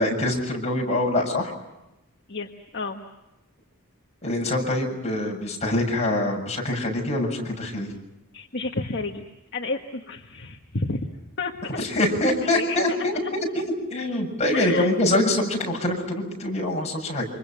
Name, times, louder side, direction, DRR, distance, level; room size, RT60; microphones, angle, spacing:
voice 1, 0.0-1.5 4.2-7.9 11.8-13.1 13.5-13.6 13.9-17.3, left 1 dB, 30° left, 0 dB, 7.1 m, -24 dB
voice 2, 2.3-3.1 8.3-9.2 9.5-11.0 11.4-11.7 12.2-12.8 14.5-14.9, left 3 dB, 50° left, 2 dB, 1.7 m, -31 dB
28.5 x 26.5 x 5.9 m, 0.94 s
head